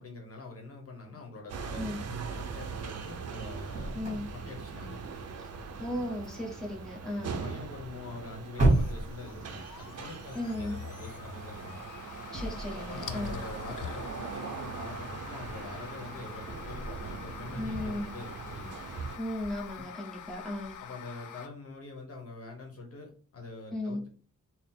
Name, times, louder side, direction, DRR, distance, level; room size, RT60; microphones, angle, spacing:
voice 1, 0.0-4.1 4.3-5.0 7.4-11.8 12.9-18.7 20.8-24.1, left 3 dB, 50° left, 1 dB, 0.9 m, -45 dB
sound 1, 1.5-19.2, right 5 dB, 55° right, 0.5 m, -41 dB
sound 2, 2.4-19.8, right 2 dB, 25° right, 1.6 m, -37 dB
voice 2, 3.9-4.3 5.8-7.4 10.3-10.7 12.3-13.4 17.6-18.2 19.2-20.8 23.7-24.0, left 1 dB, ahead, -3 dB, 1.0 m, -36 dB
sound 3, 8.6-21.5, left 9 dB, 90° left, 0.5 m, -46 dB
3.7 x 2.0 x 4.2 m, 0.39 s
wide cardioid pair, 175°, 30 cm